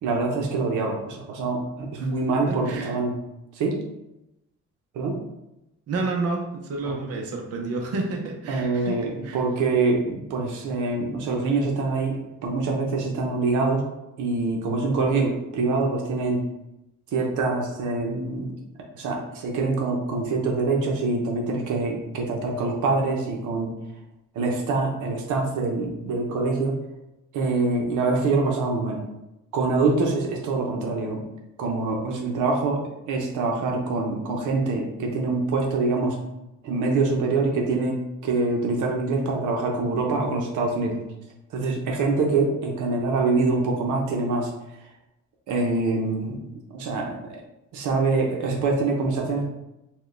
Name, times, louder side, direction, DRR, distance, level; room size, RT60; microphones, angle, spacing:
voice 1, 0.0-3.1 3.6-3.8 4.9-5.2 6.9-7.0 8.5-13.8 14.2-16.4 17.1-18.5 18.9-23.7 24.3-26.8 27.3-29.0 29.5-31.2 31.6-36.2 36.6-41.1 41.5-44.5 45.5-46.4 46.7-47.4 47.7-49.4, right 3 dB, 80° right, 0 dB, 0.8 m, -25 dB
voice 2, 2.5-3.0 5.9-9.4, right 3 dB, 55° right, 1 dB, 0.7 m, -30 dB
4.3 x 2.3 x 3.2 m, 0.90 s
cardioid pair, 90°, 30 cm